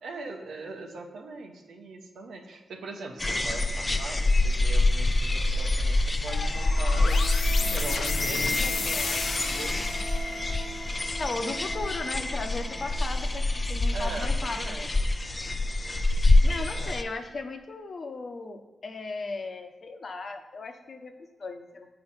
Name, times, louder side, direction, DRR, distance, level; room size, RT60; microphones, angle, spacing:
voice 1, 0.0-7.2 7.7-10.1 13.9-15.0 16.4-17.0, right 3 dB, 90° right, 2 dB, 1.2 m, -41 dB
sound 1, 3.2-17.0, left 2 dB, 25° left, 0.6 m, -26 dB
sound 2, 6.2-14.8, right 2 dB, 30° right, 1.4 m, -44 dB
sound 3, 6.3-10.6, left 4 dB, 70° left, 0.7 m, -33 dB
voice 2, 11.2-14.9 16.2-21.9, left 3 dB, 55° left, 5 dB, 1.0 m, -36 dB
7.9 x 5.0 x 5.7 m, 1.3 s
cardioid pair, 70°, 0 cm